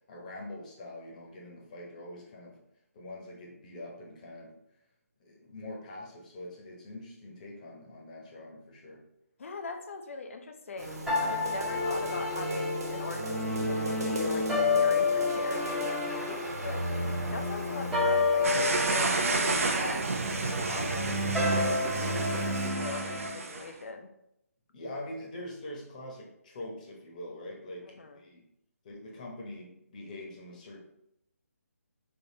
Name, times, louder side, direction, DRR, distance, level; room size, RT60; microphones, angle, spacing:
voice 1, 0.1-2.6 2.9-4.6 5.2-9.0 24.7-28.4 28.8-30.8, left 1 dB, 30° left, -2 dB, 0.9 m, -44 dB
voice 2, 9.4-16.8 17.3-21.8 22.3-24.1 28.0-28.2, left 4 dB, 55° left, 6 dB, 0.6 m, -41 dB
sound 1, 10.8-22.7, right 1 dB, 75° right, 1.2 m, -39 dB
sound 2, 11.1-23.3, left 3 dB, 5° right, 0.8 m, -30 dB
sound 3, 18.4-23.7, right 3 dB, 60° right, 0.6 m, -31 dB
4.1 x 3.6 x 2.7 m, 0.80 s
hypercardioid pair, 160°, 8 cm